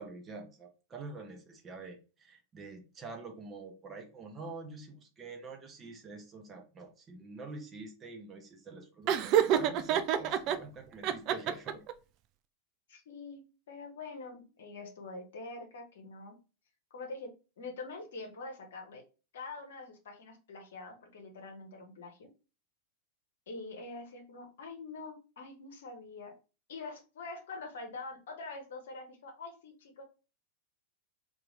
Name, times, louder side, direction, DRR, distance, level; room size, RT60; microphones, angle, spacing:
voice 1, 0.0-11.8, right 3 dB, 25° right, 0.7 m, -46 dB
Laughter, 9.1-10.6 11.0-11.9, right 10 dB, 40° right, 0.3 m, -27 dB
voice 2, 12.9-16.4 16.9-19.0 19.3-22.3 23.5-26.3 26.7-30.0, left 3 dB, 60° left, 0.8 m, -45 dB
2.8 x 2.3 x 3.8 m
figure-of-eight pair, 90°, 0 cm